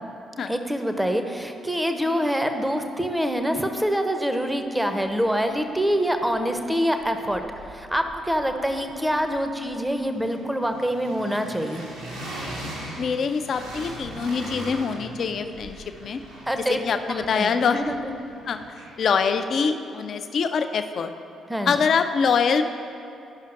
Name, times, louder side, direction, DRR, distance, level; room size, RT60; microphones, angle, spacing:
voice 1, 0.5-11.8 16.5-16.8 17.1-18.1 21.5-21.9, equal, 5° right, 6 dB, 0.6 m, -25 dB
sound 1, 5.2-5.3 5.6-6.7 7.0-19.2, right 1 dB, 80° right, 1.3 m, -40 dB
voice 2, 13.0-16.2 16.7-17.8 18.5-18.6 19.0-21.1 21.6-22.6, left 6 dB, 50° left, 8 dB, 0.3 m, -24 dB
11.5 x 5.6 x 2.5 m, 2.6 s
figure-of-eight pair, 40°, 0 cm